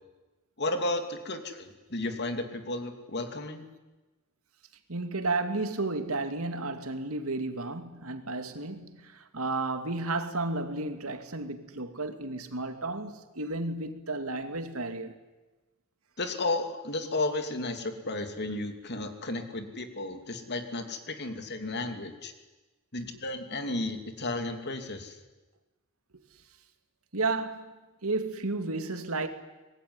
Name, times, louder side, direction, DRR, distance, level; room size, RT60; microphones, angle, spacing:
voice 1, 0.6-3.6 16.2-22.3 22.9-25.2, left 2 dB, 50° left, 2.8 m, -33 dB
voice 2, 4.9-15.1 27.1-29.3, right 3 dB, 75° right, 2.4 m, -32 dB
24.5 x 21.0 x 9.8 m
head